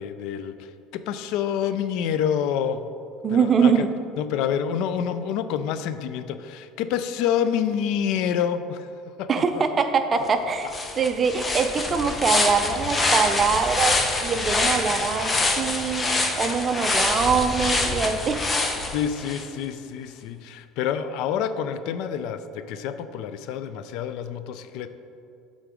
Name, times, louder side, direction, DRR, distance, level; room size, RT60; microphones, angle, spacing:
voice 1, 0.0-2.9 3.3-3.8 4.2-8.9 9.2-9.3 9.5-9.6 10.2-10.3 18.9-24.9, left 8 dB, 70° left, 11 dB, 0.4 m, -27 dB
voice 2, 3.2-3.9 9.3-14.0 14.2-18.4, right 5 dB, 30° right, 8 dB, 0.5 m, -23 dB
sound 1, 10.3-10.4 10.7-19.4, left 2 dB, 20° left, 0.7 m, -25 dB
8.2 x 3.8 x 5.0 m, 2.6 s
supercardioid pair, 115°, 0 cm